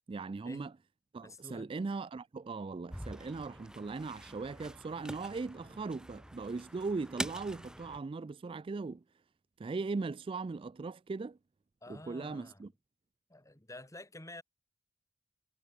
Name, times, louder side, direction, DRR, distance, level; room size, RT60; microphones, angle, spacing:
voice 1, 0.1-0.7 1.1-9.0 9.6-11.4 11.9-12.7, right 4 dB, 25° right, 0.3 m, -39 dB
voice 2, 1.2-1.7 11.8-12.6 13.3-14.4, left 2 dB, 15° left, 2.5 m, -50 dB
sound 1, 2.9-8.0, right 1 dB, 5° right, 2.2 m, -45 dB
head